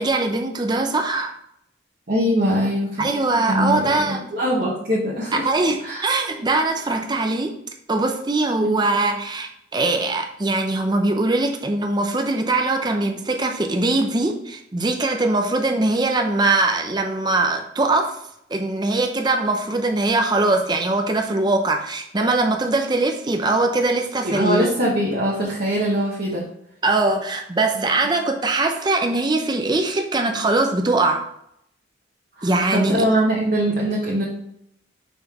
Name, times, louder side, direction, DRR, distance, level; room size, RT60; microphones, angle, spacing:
voice 1, 0.0-1.3 3.0-4.3 5.4-7.5 7.9-18.1 18.5-24.7 26.8-31.2 32.4-33.1, right 2 dB, 25° right, 4 dB, 0.6 m, -21 dB
voice 2, 2.1-3.0 3.5-5.4 5.8-6.1 24.2-26.4 27.7-27.8 32.4-34.2, equal, 50° right, -6 dB, 1.2 m, -22 dB
5.8 x 5.5 x 3.0 m, 0.74 s
head